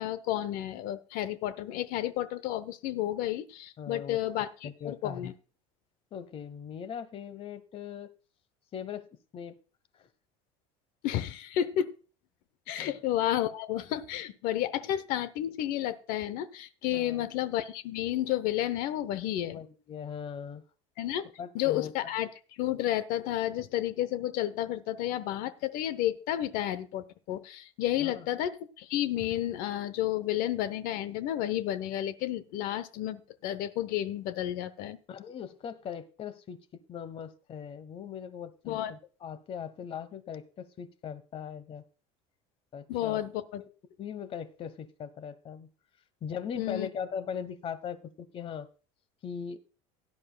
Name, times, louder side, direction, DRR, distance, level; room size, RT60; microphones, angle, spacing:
voice 1, 0.0-5.3 11.0-11.9 12.7-19.6 21.0-21.2 21.5-22.3 22.6-35.0 38.7-38.9 42.9-43.6 46.6-46.9, left 12 dB, 65° left, 15 dB, 0.8 m, -31 dB
voice 2, 3.8-4.2 4.6-5.3 6.1-8.1 8.7-9.1 9.3-9.6 9.9-10.1 12.8-13.0 16.9-17.3 19.5-20.6 21.4-21.9 28.0-28.3 35.1-36.6 36.9-41.8 42.7-43.2 43.6-43.7 44.0-45.7 46.2-48.7 49.2-49.6, left 7 dB, 35° left, 15 dB, 1.1 m, -40 dB
17.0 x 10.5 x 2.3 m, 0.36 s
supercardioid pair, 120°, 15 cm